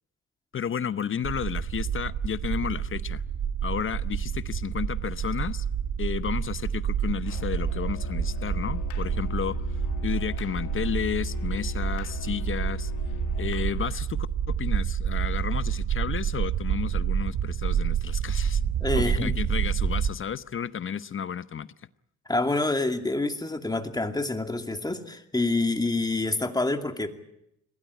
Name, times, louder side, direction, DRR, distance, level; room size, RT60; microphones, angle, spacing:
voice 1, 0.5-3.2 3.6-5.7 6.0-12.9 13.4-18.6 19.0-21.7, left 8 dB, 45° left, 0.8 m, -32 dB
sound 1, 1.2-20.1, right 8 dB, 65° right, 1.4 m, -29 dB
Musical instrument, 7.2-14.0, left 6 dB, 80° left, 1.8 m, -37 dB
voice 2, 18.8-19.4 22.3-27.1, left 2 dB, 15° left, 2.5 m, -27 dB
22.0 x 17.0 x 9.9 m
cardioid pair, 90°, 30 cm